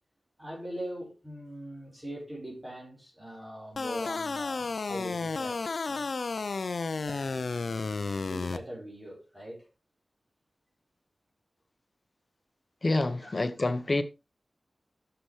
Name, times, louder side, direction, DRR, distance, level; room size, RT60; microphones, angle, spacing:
voice 1, 0.4-7.7 8.2-9.7 13.2-13.3, equal, 20° right, 4.8 m, -42 dB
sound 1, 3.8-8.6, left 4 dB, 70° left, 0.7 m, -32 dB
voice 2, 12.8-14.0, left 2 dB, 45° left, 1.0 m, -27 dB
11.5 x 6.9 x 3.3 m
wide cardioid pair, 80°, 0 cm